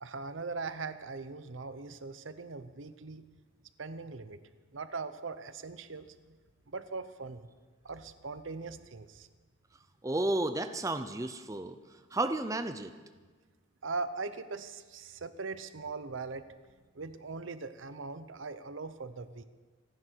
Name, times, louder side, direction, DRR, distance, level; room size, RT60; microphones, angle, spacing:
voice 1, 0.0-3.3 3.8-4.4 4.7-6.1 6.7-7.5 7.8-9.3 13.8-16.5 16.9-19.4, right 4 dB, 70° right, 12 dB, 0.8 m, -40 dB
voice 2, 10.0-11.8 12.1-12.9, right 2 dB, 15° right, 9 dB, 0.6 m, -32 dB
26.0 x 10.0 x 4.6 m, 1.4 s
head